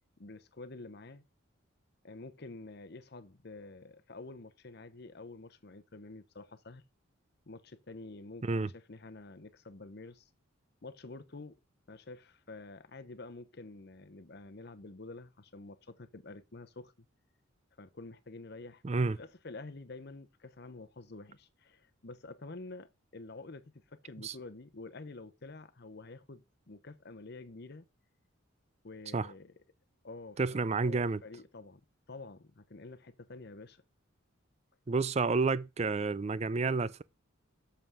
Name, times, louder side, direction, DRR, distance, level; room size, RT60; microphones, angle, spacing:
voice 1, 0.2-1.2 2.0-6.8 7.5-10.3 10.8-11.6 11.9-16.9 17.8-27.9 28.8-29.5 30.0-31.8 32.1-33.8, left 3 dB, 50° left, 0.8 m, -48 dB
voice 2, 18.8-19.2 24.2-24.3 29.1-29.3 30.4-31.2 34.9-37.0, right 4 dB, 30° right, 0.4 m, -30 dB
7.1 x 5.5 x 6.2 m
head